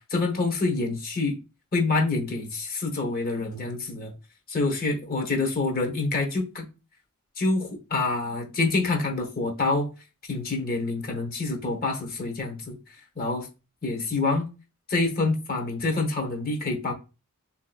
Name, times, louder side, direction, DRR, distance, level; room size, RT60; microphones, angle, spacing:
voice 1, 0.1-1.4 1.7-4.1 4.5-6.6 7.4-9.9 10.3-12.8 13.1-13.5 13.8-14.5 14.9-16.9, left 3 dB, 45° left, 1.0 m, -26 dB
3.7 x 2.8 x 2.3 m
head